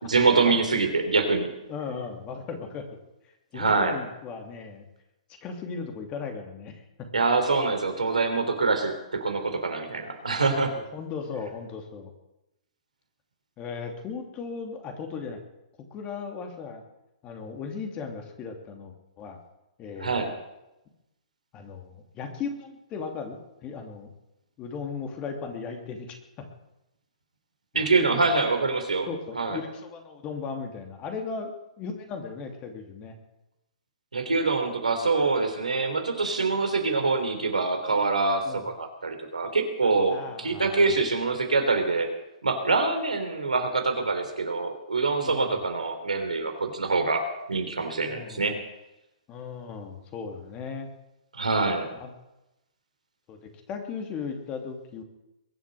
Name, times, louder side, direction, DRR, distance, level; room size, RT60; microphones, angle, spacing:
voice 1, 0.0-1.5 3.5-4.0 7.1-10.8 20.0-20.3 27.7-29.1 29.3-29.6 34.1-42.1 42.4-47.2 47.5-48.6 51.3-51.9, right 3 dB, 85° right, 5 dB, 3.3 m, -25 dB
voice 2, 1.7-2.8 3.5-4.8 5.4-6.8 10.9-12.1 13.6-15.4 15.9-16.8 17.2-19.4 19.8-20.3 21.5-24.1 24.6-26.4 27.7-28.3 29.1-31.5 31.8-33.1 38.4-38.6 40.1-40.9 45.2-45.6 48.1-48.6 49.3-50.9 51.9-52.1 53.3-55.0, left 5 dB, 30° left, 4 dB, 2.8 m, -37 dB
22.0 x 7.4 x 7.8 m, 0.93 s
hypercardioid pair, 120°, 4 cm